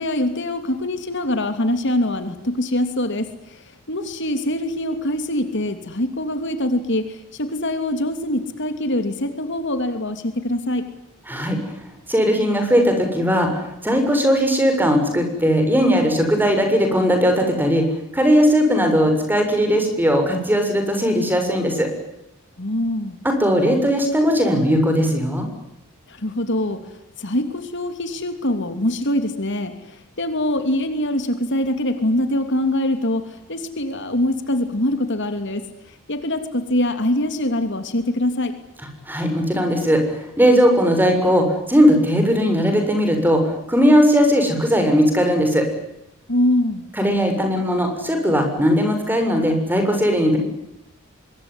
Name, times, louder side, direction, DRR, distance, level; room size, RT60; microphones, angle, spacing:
voice 1, 0.0-10.8 22.6-23.2 26.1-26.8 27.2-35.6 36.1-38.5 46.3-46.8, left 1 dB, 55° left, 8 dB, 2.9 m, -23 dB
voice 2, 11.3-11.6 12.1-17.8 18.1-21.9 23.2-25.5 39.1-45.7 47.0-50.4, equal, 10° right, 5 dB, 7.0 m, -18 dB
25.5 x 22.5 x 9.9 m, 0.87 s
head